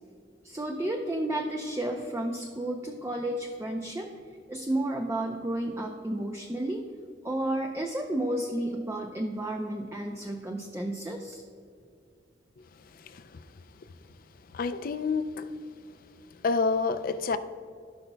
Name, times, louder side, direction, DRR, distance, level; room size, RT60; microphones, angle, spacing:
voice 1, 0.4-4.1 4.5-6.8 7.2-11.4, right 1 dB, 15° right, 2 dB, 0.5 m, -32 dB
voice 2, 12.9-13.5 14.5-15.5 16.4-17.4, left 4 dB, 50° left, 11 dB, 0.4 m, -29 dB
16.0 x 5.5 x 2.2 m, 2.3 s
head